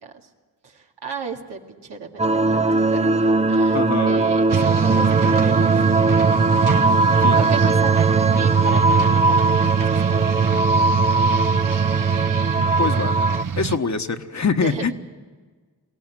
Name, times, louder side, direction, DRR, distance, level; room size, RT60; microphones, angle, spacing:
voice 1, 0.6-6.3 7.4-10.3 14.6-14.9, right 5 dB, 85° right, 1 dB, 2.2 m, -35 dB
sound 1, 2.2-13.4, right 3 dB, 15° right, 0.6 m, -20 dB
voice 2, 3.7-4.2 7.2-7.6 12.8-13.2 13.6-14.9, left 5 dB, 45° left, 7 dB, 1.4 m, -24 dB
sound 2, 4.5-13.8, right 7 dB, 55° right, 1.0 m, -22 dB
22.5 x 17.0 x 9.1 m, 1.4 s
cardioid pair, 45°, 40 cm